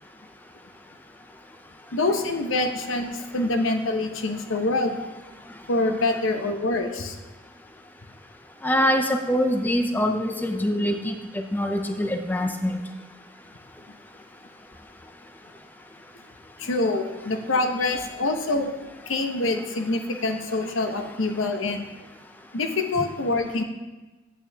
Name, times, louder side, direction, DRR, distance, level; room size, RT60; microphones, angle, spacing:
voice 1, 1.9-5.0 5.7-7.2 16.6-18.7 19.1-21.9 22.5-23.6, left 2 dB, 85° left, 6 dB, 0.9 m, -25 dB
voice 2, 8.6-12.8, equal, 10° left, 5 dB, 0.4 m, -24 dB
8.6 x 8.5 x 3.4 m, 1.2 s
head